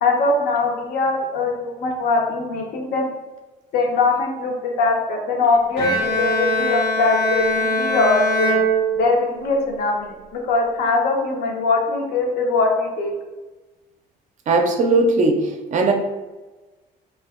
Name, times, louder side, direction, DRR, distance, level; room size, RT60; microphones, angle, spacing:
voice 1, 0.0-3.1 3.7-8.5 9.0-13.1, left 3 dB, 65° left, 1 dB, 0.6 m, -21 dB
Bowed string instrument, 5.8-9.5, equal, 85° left, 0.9 m, -22 dB
voice 2, 14.5-15.9, right 3 dB, 45° right, 4 dB, 0.4 m, -18 dB
2.7 x 2.2 x 2.3 m, 1.2 s
cardioid pair, 110°, 17 cm